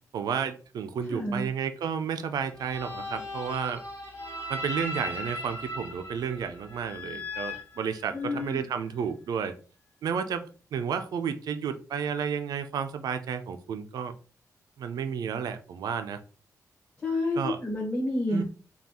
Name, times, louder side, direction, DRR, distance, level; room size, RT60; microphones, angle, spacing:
voice 1, 0.1-3.8 4.5-9.5 10.0-14.1 14.8-16.2 17.4-17.6 18.3-18.4, right 7 dB, 90° right, 0.4 m, -32 dB
voice 2, 1.1-1.5 8.1-8.6 17.0-18.4, left 2 dB, 25° left, 1.1 m, -29 dB
sound 1, 2.5-8.5, left 1 dB, 50° left, 1.5 m, -38 dB
5.4 x 2.3 x 2.9 m
wide cardioid pair, 155°, 6 cm